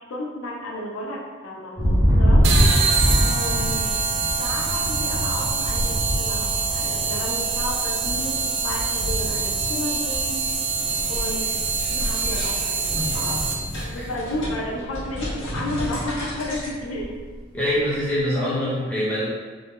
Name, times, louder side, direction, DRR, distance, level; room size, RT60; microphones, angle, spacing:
voice 1, 0.1-2.5 3.2-3.9 4.4-10.5 11.1-11.5 11.8-13.4 13.9-17.2, left 1 dB, 90° left, -2 dB, 0.5 m, -32 dB
Thunder, 1.8-14.6 15.0-15.5 15.9-17.4, equal, 30° right, 0.8 m, -25 dB
sound 1, 2.4-13.8, right 5 dB, 60° right, 0.3 m, -25 dB
sound 2, 10.8-16.7, equal, 60° left, 0.8 m, -33 dB
voice 2, 17.5-19.3, equal, 5° left, -9 dB, 0.7 m, -24 dB
2.6 x 2.1 x 3.5 m, 1.5 s
head